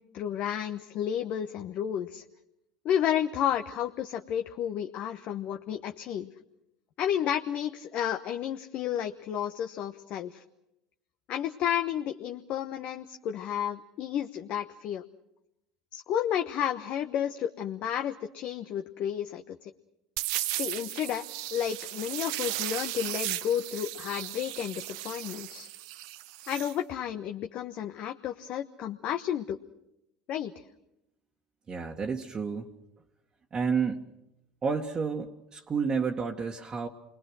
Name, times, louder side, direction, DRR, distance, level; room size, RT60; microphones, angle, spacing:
voice 1, 0.0-2.2 2.8-6.3 7.0-10.4 11.3-15.0 15.9-19.7 20.5-21.2 21.5-25.7 26.5-29.6 30.3-30.5, left 10 dB, 55° left, 6 dB, 1.1 m, -31 dB
sound 1, 20.2-26.7, right 16 dB, 70° right, 0.8 m, -36 dB
voice 2, 31.7-32.7 33.5-34.0 34.6-36.9, right 5 dB, 30° right, 0 dB, 1.7 m, -30 dB
28.5 x 21.5 x 6.3 m, 0.87 s
hypercardioid pair, 80°, 3 cm